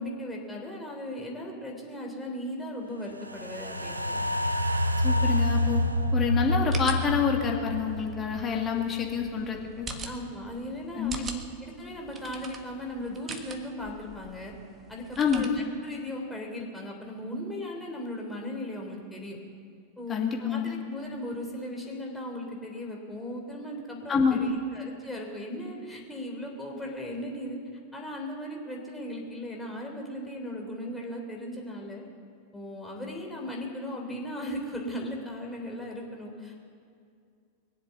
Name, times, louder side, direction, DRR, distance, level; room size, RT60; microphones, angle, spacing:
voice 1, 0.0-4.2 10.0-11.1 11.6-14.5 14.9-19.4 20.0-27.6 27.9-32.0 32.5-36.5, left 1 dB, 5° left, -1 dB, 3.4 m, -37 dB
sound 1, 3.1-9.5 9.9-10.0, left 1 dB, 85° right, 0.7 m, -28 dB
voice 2, 5.0-5.9 6.1-9.9 11.0-11.4 15.2-15.6 20.1-20.8 24.1-24.6, left 6 dB, 25° left, 1 dB, 2.4 m, -27 dB
sound 2, 5.7-15.5, right 4 dB, 25° right, 1.4 m, -44 dB
22.5 x 7.9 x 8.2 m, 2.3 s
figure-of-eight pair, 90°, 0 cm